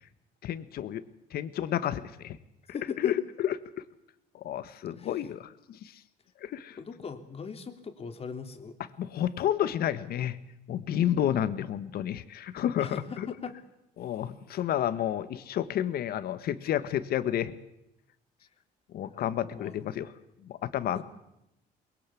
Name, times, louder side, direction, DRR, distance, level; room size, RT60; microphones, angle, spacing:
voice 1, 0.4-1.0 1.3-2.4 2.7-3.5 4.3-5.9 6.4-6.8 9.0-10.4 10.7-13.3 14.0-17.5 18.9-20.1 20.4-21.0, left 11 dB, 65° left, 13 dB, 1.5 m, -30 dB
voice 2, 2.7-3.2 5.0-5.2 6.8-8.8 12.8-13.6 19.1-19.9 20.9-21.0, left 5 dB, 35° left, 7 dB, 2.9 m, -40 dB
23.5 x 21.5 x 8.5 m, 0.84 s
cardioid pair, 110°, 17 cm